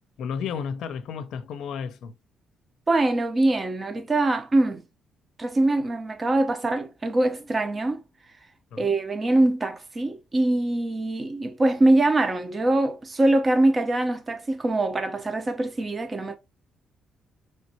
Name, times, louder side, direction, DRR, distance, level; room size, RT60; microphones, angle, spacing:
voice 1, 0.2-2.1 8.7-8.9, left 6 dB, 75° left, 0.5 m, -32 dB
voice 2, 2.9-4.8 5.4-8.0 8.8-16.4, right 2 dB, 30° right, 0.8 m, -23 dB
5.2 x 3.2 x 2.8 m
cardioid pair, 90°, 0 cm